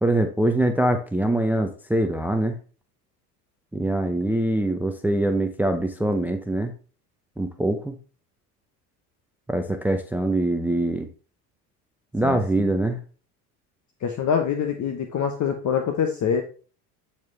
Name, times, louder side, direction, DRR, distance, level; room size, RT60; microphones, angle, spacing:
voice 1, 0.0-2.6 3.7-6.7 7.4-8.0 9.5-11.1 12.1-13.0, right 1 dB, 5° right, 7 dB, 0.7 m, -23 dB
voice 2, 12.2-12.7 14.0-16.4, left 7 dB, 35° left, 5 dB, 1.0 m, -25 dB
8.3 x 4.4 x 3.3 m, 0.38 s
hypercardioid pair, 65°, 49 cm